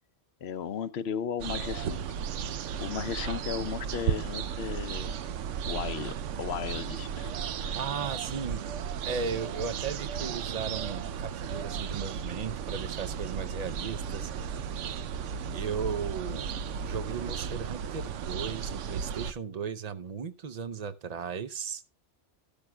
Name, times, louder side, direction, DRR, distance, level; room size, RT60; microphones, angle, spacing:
voice 1, 0.4-2.0 2.8-5.2 5.7-7.3 7.6-7.8, left 8 dB, 65° left, 0.9 m, -35 dB
sound 1, 1.4-19.3, right 7 dB, 90° right, 1.0 m, -35 dB
voice 2, 7.7-8.7 9.0-14.3 15.5-16.5 16.8-21.8, right 6 dB, 45° right, 0.6 m, -36 dB
13.5 x 12.0 x 2.3 m
omnidirectional pair, 1.2 m